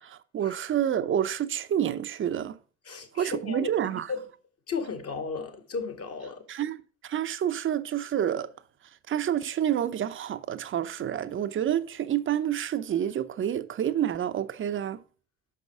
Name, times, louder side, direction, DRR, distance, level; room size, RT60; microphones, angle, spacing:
voice 1, 0.0-2.6 2.9-4.1 6.5-6.8 7.0-8.5 9.1-15.0, right 10 dB, 40° right, 0.7 m, -28 dB
voice 2, 2.9-3.7 4.1-4.2 4.7-6.4, left 5 dB, 45° left, 1.9 m, -34 dB
6.0 x 5.6 x 4.8 m
hypercardioid pair, 60°, 33 cm